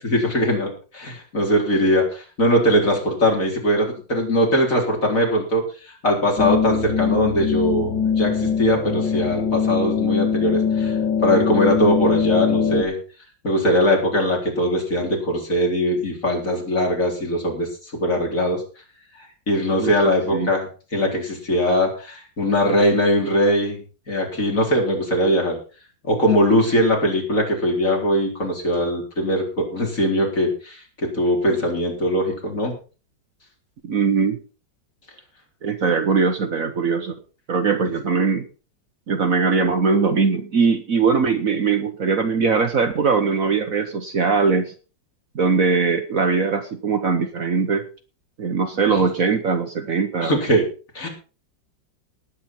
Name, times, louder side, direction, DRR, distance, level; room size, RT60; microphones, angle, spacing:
voice 1, 0.1-5.6 6.0-10.9 11.2-13.0 13.4-18.6 19.5-20.7 20.9-23.8 24.1-25.6 26.1-32.7 48.9-49.0 50.2-50.6 50.9-51.1, equal, 45° left, 0 dB, 4.4 m, -21 dB
sound 1, 6.4-12.8, left 6 dB, 85° left, 2.3 m, -22 dB
voice 2, 33.8-34.4 35.6-37.1 37.5-38.4 39.1-44.7 45.3-47.8 48.4-50.3, right 5 dB, 50° right, 7 dB, 1.4 m, -21 dB
19.0 x 8.5 x 4.4 m, 0.36 s
omnidirectional pair, 2.0 m